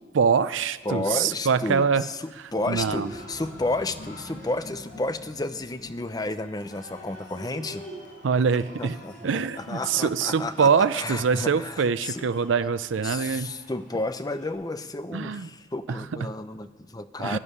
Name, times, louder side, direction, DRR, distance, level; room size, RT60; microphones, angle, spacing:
voice 1, 0.1-2.0 2.7-3.1 8.2-9.0 9.2-13.5 15.1-15.5 15.9-16.3 17.2-17.4, right 6 dB, 75° right, 13 dB, 0.5 m, -24 dB
voice 2, 0.8-2.2 2.5-7.8 8.8-12.3 13.0-17.4, left 2 dB, 20° left, 11 dB, 0.7 m, -32 dB
Cheering, 2.5-14.5, equal, 45° left, 5.3 m, -45 dB
12.5 x 11.0 x 9.8 m, 1.3 s
head